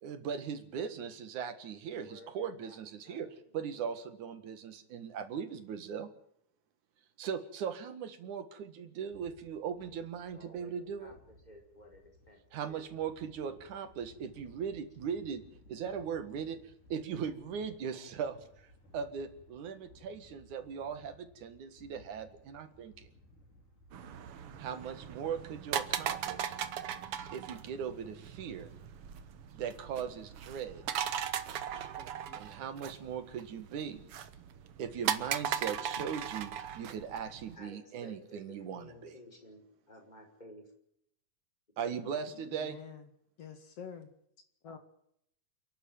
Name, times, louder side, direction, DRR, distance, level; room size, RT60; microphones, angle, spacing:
voice 1, 0.0-3.3 3.5-6.1 7.2-11.1 12.5-15.4 15.7-16.6 16.9-18.7 18.9-23.1 24.6-26.5 27.3-28.7 29.5-30.8 32.3-34.0 34.8-39.2 41.8-42.8, right 7 dB, 75° right, 10 dB, 3.2 m, -39 dB
voice 2, 1.9-4.0 10.2-12.4 12.7-12.9 37.5-40.7 41.8-42.5, left 1 dB, 15° left, 2 dB, 5.4 m, -55 dB
sound 1, 9.1-27.4, left 1 dB, 80° left, 6.9 m, -61 dB
sound 2, 23.9-37.6, right 9 dB, 55° right, 1.8 m, -38 dB
voice 3, 42.3-43.1 43.4-44.1 44.6-44.8, left 6 dB, 55° left, 8 dB, 2.9 m, -47 dB
29.0 x 11.5 x 9.3 m, 0.72 s
omnidirectional pair, 3.5 m